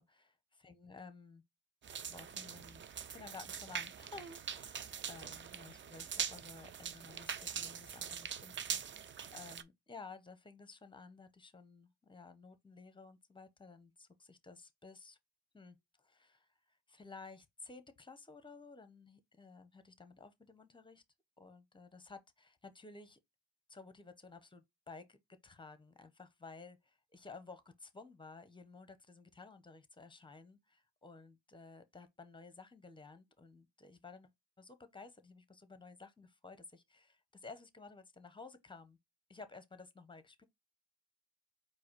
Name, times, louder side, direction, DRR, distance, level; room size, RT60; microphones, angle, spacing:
voice 1, 0.0-1.4 2.1-2.8 3.1-15.2 15.5-21.0 21.4-23.2 23.7-34.3 34.6-39.0 39.3-40.4, left 4 dB, 15° left, 0.8 m, -54 dB
sound 1, 1.8-9.6, right 7 dB, 30° right, 0.4 m, -43 dB
4.6 x 2.2 x 4.6 m
supercardioid pair, 60°, 38 cm